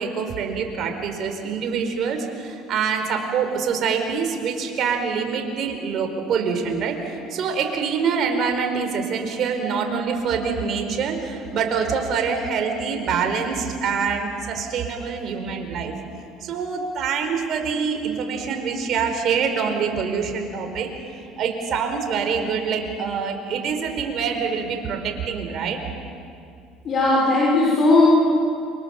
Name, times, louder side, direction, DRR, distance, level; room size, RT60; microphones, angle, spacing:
voice 1, 0.0-15.9 16.4-20.9 21.4-25.8, right 6 dB, 55° right, 5 dB, 4.9 m, -25 dB
voice 2, 26.8-28.1, left 2 dB, 45° left, -4 dB, 6.4 m, -17 dB
29.0 x 25.0 x 7.5 m, 2.4 s
supercardioid pair, 90°, 0 cm